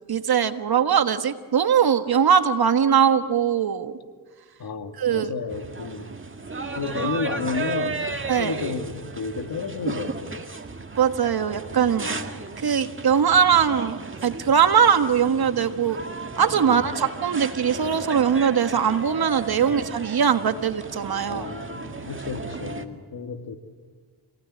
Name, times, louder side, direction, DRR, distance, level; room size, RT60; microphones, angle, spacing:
voice 1, 0.1-3.9 5.0-5.3 8.3-8.5 11.0-12.1 12.6-16.0 16.4-21.4, right 7 dB, 60° right, 9 dB, 1.5 m, -21 dB
voice 2, 4.6-6.2 6.7-10.3 11.9-12.3 16.6-16.9 19.6-19.8 21.3-23.6, left 5 dB, 60° left, 6 dB, 2.3 m, -32 dB
sound 1, 5.5-22.9, right 4 dB, 30° right, 2.0 m, -34 dB
27.5 x 18.5 x 9.8 m, 1.5 s
cardioid pair, 75°, 41 cm